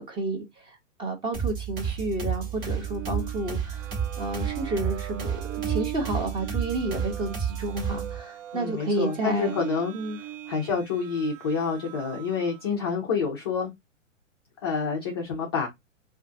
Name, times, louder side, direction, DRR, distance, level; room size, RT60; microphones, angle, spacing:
voice 1, 0.0-9.6 9.9-10.2, right 2 dB, 15° right, 0.7 m, -31 dB
sound 1, 1.3-8.2, right 7 dB, 45° right, 1.3 m, -31 dB
sound 2, 2.5-12.7, right 11 dB, 70° right, 0.6 m, -40 dB
voice 2, 8.5-9.9 10.5-13.7 14.6-15.7, left 5 dB, 20° left, 0.3 m, -28 dB
2.5 x 2.5 x 3.5 m
hypercardioid pair, 120°, 39 cm